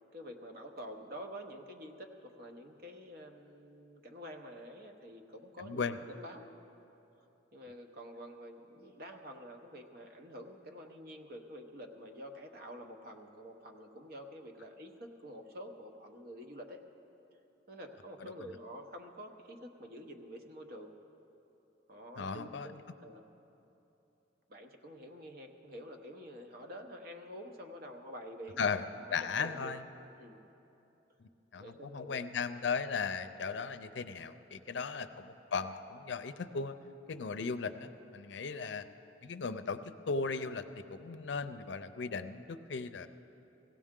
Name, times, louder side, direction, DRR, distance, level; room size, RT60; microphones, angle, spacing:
voice 1, 0.1-6.5 7.5-16.8 17.7-20.9 21.9-23.2 24.5-28.8 29.1-29.8 30.2-30.4 31.6-32.3 34.7-35.0 38.4-38.6, equal, 55° right, 4 dB, 1.0 m, -48 dB
voice 2, 5.6-6.0 18.2-18.3 22.2-22.7 28.6-28.8 29.1-29.8 31.2-36.8 37.1-38.9 39.2-40.6 40.9-43.1, left 5 dB, 70° left, 10 dB, 0.5 m, -37 dB
17.5 x 16.0 x 3.7 m, 3.0 s
head